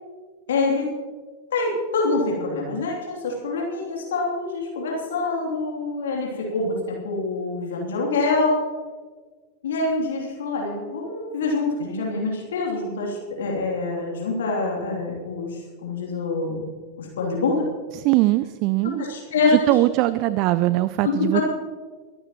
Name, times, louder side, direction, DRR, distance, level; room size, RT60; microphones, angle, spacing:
voice 1, 0.5-0.9 1.5-8.6 9.6-16.7 17.0-17.6 19.0-19.7 21.0-21.4, left 3 dB, 60° left, -1 dB, 3.0 m, -25 dB
voice 2, 17.9-19.0 19.5-21.4, right 17 dB, 40° right, 16 dB, 0.4 m, -21 dB
24.0 x 11.5 x 3.1 m, 1.4 s
figure-of-eight pair, 90°, 0 cm